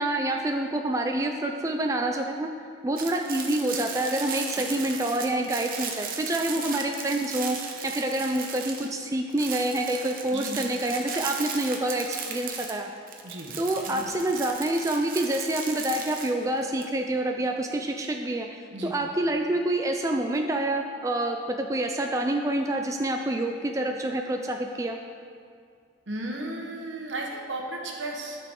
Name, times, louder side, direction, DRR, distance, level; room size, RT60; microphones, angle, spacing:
voice 1, 0.0-2.5 2.8-12.9 13.6-25.0, right 1 dB, 15° right, 3 dB, 0.3 m, -27 dB
sound 1, 3.0-9.0 9.3-16.9, right 6 dB, 50° right, 0.8 m, -36 dB
voice 2, 10.3-10.7 13.2-13.5 13.9-14.1 18.7-19.0 26.1-28.4, right 1 dB, 75° right, 0 dB, 1.2 m, -35 dB
12.0 x 5.8 x 3.7 m, 2.2 s
head